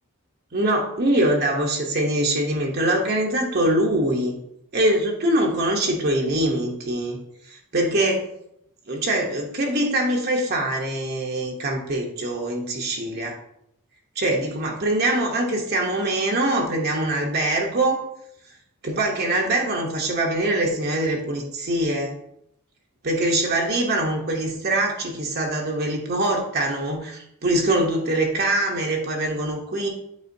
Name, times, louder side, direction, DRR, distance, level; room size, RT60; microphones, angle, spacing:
voice 1, 0.5-4.3 4.7-7.2 7.5-8.2 8.9-13.4 14.2-18.0 18.8-22.2 23.0-29.9, right 1 dB, 45° right, 0 dB, 0.9 m, -23 dB
8.1 x 4.8 x 2.6 m, 0.76 s
head